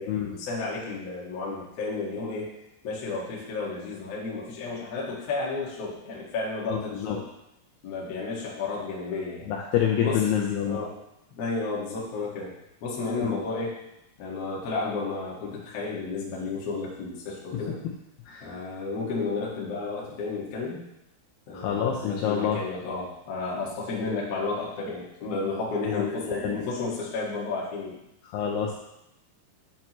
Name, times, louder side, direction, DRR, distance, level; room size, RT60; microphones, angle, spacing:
voice 1, 0.0-2.5 2.8-7.2 7.8-9.5 10.0-10.9 11.3-12.5 12.8-13.7 14.2-17.8 18.4-20.9 21.5-28.0, left 3 dB, 70° left, -5 dB, 1.5 m, -32 dB
voice 2, 9.5-10.8 13.2-13.4 18.3-18.5 21.5-22.6 26.0-26.6 28.3-28.8, left 9 dB, 90° left, -1 dB, 2.3 m, -27 dB
10.0 x 4.4 x 3.0 m, 0.85 s
omnidirectional pair, 5.5 m